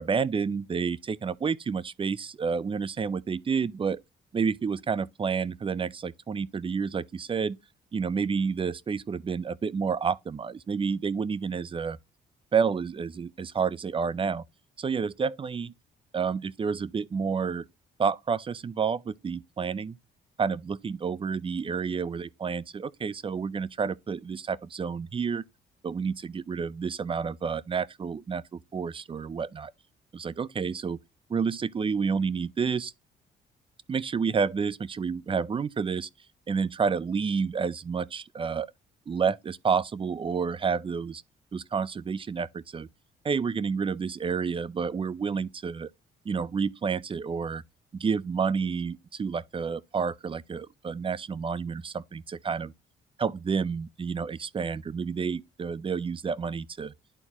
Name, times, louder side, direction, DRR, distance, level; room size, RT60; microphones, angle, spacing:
voice 1, 0.0-4.0 4.3-7.6 7.9-12.0 12.5-14.4 14.8-15.7 16.1-17.6 18.0-20.0 20.4-25.4 25.8-29.7 30.1-31.0 31.3-32.9 33.9-36.1 36.5-38.7 39.1-41.2 41.5-42.9 43.2-45.9 46.3-47.6 48.0-52.7 53.2-56.9, right 5 dB, 25° right, 0.4 m, -29 dB
11.0 x 4.1 x 2.9 m
cardioid pair, 90°, 20 cm